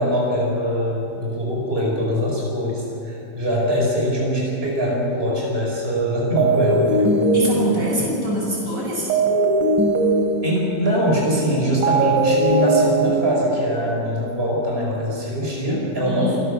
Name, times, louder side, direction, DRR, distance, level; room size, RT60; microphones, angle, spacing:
voice 1, 0.0-7.2 8.0-8.1 10.4-16.4, equal, 30° right, -3 dB, 5.1 m, -22 dB
sound 1, 6.4-14.0, right 2 dB, 90° right, 3.5 m, -21 dB
voice 2, 7.3-9.1 16.0-16.4, equal, 50° right, -3 dB, 6.8 m, -25 dB
27.0 x 17.0 x 6.7 m, 2.7 s
omnidirectional pair, 1.9 m